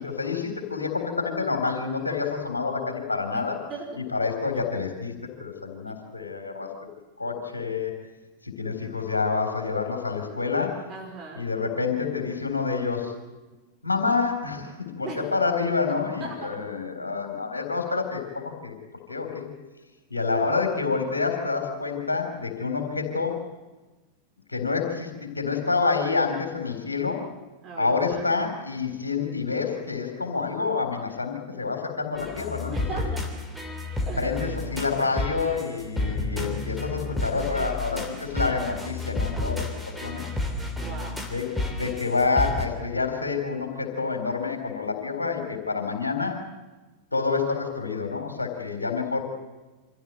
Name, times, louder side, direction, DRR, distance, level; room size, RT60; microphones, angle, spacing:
voice 1, 0.0-3.6 4.1-5.1 5.4-6.7 7.2-7.9 8.4-10.8 11.4-13.1 13.8-18.8 19.1-19.5 20.1-23.4 24.5-27.2 27.8-33.0 34.2-39.6 40.0-40.3 41.2-46.4 47.1-49.2, left 4 dB, 80° left, 3 dB, 3.9 m, -28 dB
voice 2, 10.9-11.4 15.0-15.3 16.2-16.6 27.6-28.2 32.7-33.2 34.0-34.3 40.8-41.2, right 3 dB, 35° right, 0 dB, 5.0 m, -37 dB
sound 1, 32.2-42.7, left 2 dB, ahead, 3.0 m, -31 dB
25.0 x 15.0 x 7.8 m, 1.2 s
figure-of-eight pair, 90°, 0 cm